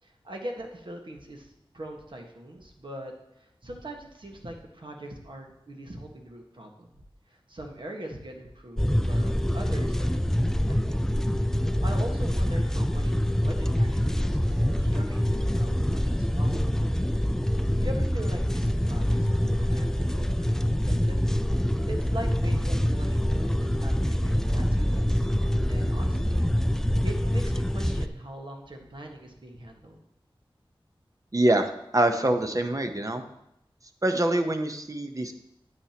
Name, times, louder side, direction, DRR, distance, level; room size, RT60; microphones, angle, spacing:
voice 1, 0.0-6.9 7.3-10.6 10.9-11.0 11.8-17.1 17.8-20.5 20.7-21.2 21.5-25.3 25.7-26.5 27.0-30.0, right 1 dB, 60° right, 1 dB, 1.5 m, -41 dB
sound 1, 8.8-28.1, equal, 5° left, 0.3 m, -25 dB
voice 2, 31.3-33.2 34.0-35.3, right 1 dB, 35° right, 6 dB, 0.9 m, -25 dB
9.5 x 8.9 x 2.9 m, 0.82 s
wide cardioid pair, 60°, 9 cm